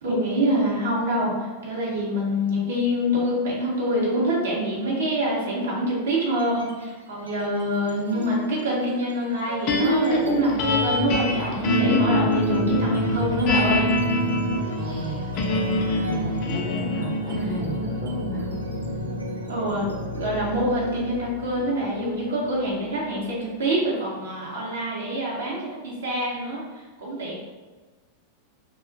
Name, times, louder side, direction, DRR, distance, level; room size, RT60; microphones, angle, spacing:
voice 1, 0.0-13.9 19.5-19.9 20.1-26.6 27.0-27.3, equal, 65° right, -5 dB, 0.7 m, -25 dB
sound 1, 6.3-6.8 7.2-23.8, left 1 dB, 80° right, 0.3 m, -35 dB
sound 2, 9.7-22.0, left 1 dB, 40° left, 0.4 m, -25 dB
voice 2, 14.8-15.3 16.1-18.5, right 1 dB, 30° right, -5 dB, 0.6 m, -33 dB
2.4 x 2.1 x 2.5 m, 1.3 s
figure-of-eight pair, 90°, 0 cm